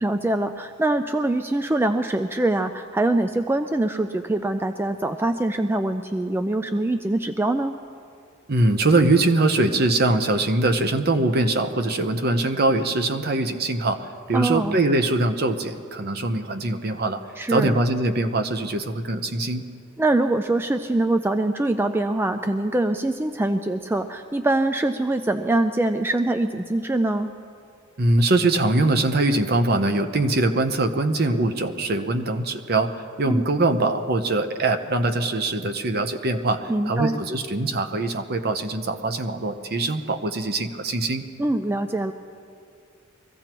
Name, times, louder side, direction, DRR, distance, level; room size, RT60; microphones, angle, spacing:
voice 1, 0.0-7.7 14.3-14.8 17.4-17.7 20.0-27.3 33.3-33.4 36.7-37.2 41.4-42.1, right 2 dB, 10° right, 7 dB, 0.3 m, -23 dB
voice 2, 8.5-17.2 17.5-19.6 28.0-41.2, right 2 dB, 50° right, 7 dB, 0.8 m, -22 dB
23.5 x 15.5 x 3.0 m, 2.3 s
head